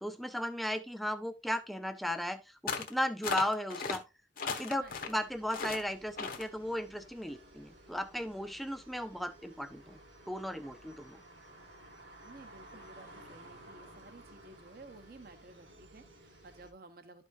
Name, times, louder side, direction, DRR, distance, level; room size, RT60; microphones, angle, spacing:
voice 1, 0.0-4.0 4.4-10.0 10.3-11.2, equal, ahead, 0.5 m, -36 dB
sound 1, 2.7-2.9 3.2-4.0 4.4-5.2 5.5-5.8 6.2-6.5, left 5 dB, 50° left, 1.0 m, -36 dB
voice 2, 4.8-5.1 12.2-17.3, right 2 dB, 50° right, 1.0 m, -54 dB
sound 2, 5.2-16.7, right 1 dB, 75° right, 2.2 m, -55 dB
12.0 x 5.1 x 2.6 m
head